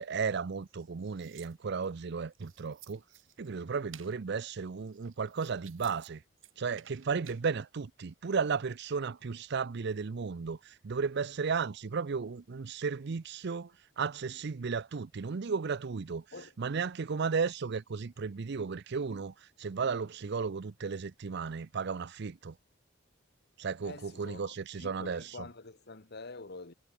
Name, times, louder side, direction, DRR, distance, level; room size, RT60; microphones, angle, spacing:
voice 1, 0.0-3.0 3.4-6.2 6.6-13.7 14.0-16.2 16.6-22.6 23.6-25.2, right 5 dB, 60° right, 0.5 m, -34 dB
sound 1, 0.6-1.9 2.3-3.5 3.9-4.1 4.9-6.1 6.4-7.4, right 12 dB, 85° right, 5.6 m, -55 dB
voice 2, 23.8-26.7, left 3 dB, 55° left, 1.6 m, -47 dB
head